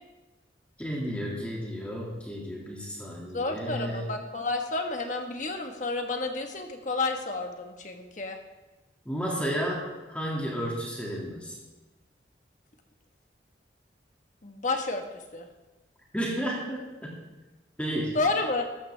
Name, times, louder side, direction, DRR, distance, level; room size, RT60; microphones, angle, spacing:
voice 1, 0.8-4.1 9.1-11.6 16.1-17.1 17.8-18.2, equal, 5° left, -3 dB, 2.3 m, -32 dB
voice 2, 3.3-8.4 14.4-15.0 15.3-15.5 18.1-18.7, left 3 dB, 45° left, 4 dB, 1.4 m, -30 dB
13.5 x 13.5 x 3.4 m, 1.1 s
head